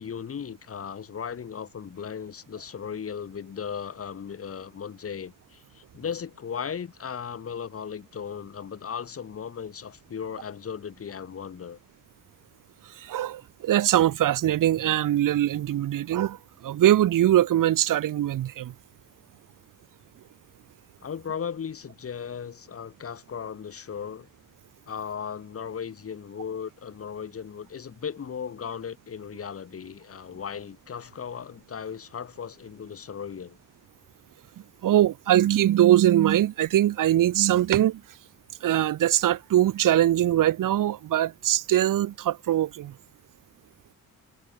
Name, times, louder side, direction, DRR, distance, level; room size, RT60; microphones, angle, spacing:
voice 1, 0.0-11.8 21.0-24.3 24.9-33.6, left 7 dB, 45° left, 1.6 m, -36 dB
voice 2, 13.0-16.4 16.6-18.7 34.8-38.0 38.6-42.9, right 12 dB, 80° right, 1.0 m, -22 dB
cardioid pair, 115°, 32 cm